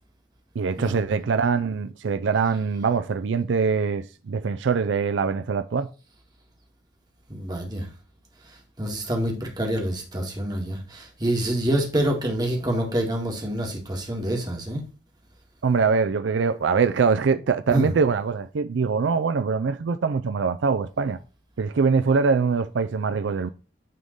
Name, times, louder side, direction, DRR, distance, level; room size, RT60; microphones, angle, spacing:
voice 1, 0.6-5.9 15.6-21.2 21.6-23.5, right 5 dB, 85° right, 0.4 m, -23 dB
voice 2, 7.3-7.9 8.8-14.8 17.7-17.9, right 1 dB, 20° right, 1.8 m, -26 dB
9.3 x 3.6 x 3.9 m
head